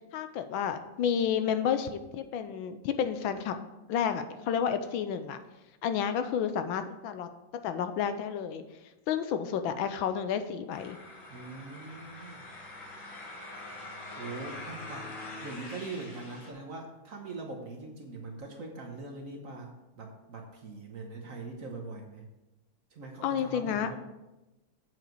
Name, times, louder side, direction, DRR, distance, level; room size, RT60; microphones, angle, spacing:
voice 1, 0.1-3.6 3.9-5.4 5.8-7.3 7.6-8.6 9.1-11.0 23.2-24.0, left 8 dB, 80° left, 9 dB, 1.4 m, -30 dB
sound 1, 10.7-16.5, left 2 dB, 55° left, 2.3 m, -44 dB
voice 2, 11.3-12.4 13.5-13.7 14.2-15.1 15.4-22.2 22.9-24.0, right 3 dB, 50° right, 2 dB, 1.2 m, -42 dB
7.8 x 7.2 x 4.6 m, 1.0 s
omnidirectional pair, 2.2 m